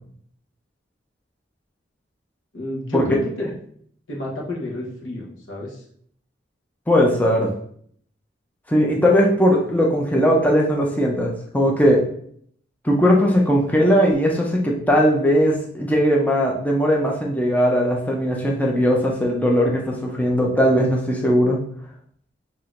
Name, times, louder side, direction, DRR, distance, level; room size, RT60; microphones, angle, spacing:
voice 1, 2.5-3.5 4.1-5.8, left 2 dB, 90° left, -2 dB, 1.1 m, -30 dB
voice 2, 6.9-7.5 8.7-12.0 12.8-21.6, equal, 10° left, -1 dB, 0.5 m, -19 dB
6.0 x 2.8 x 2.5 m, 0.64 s
head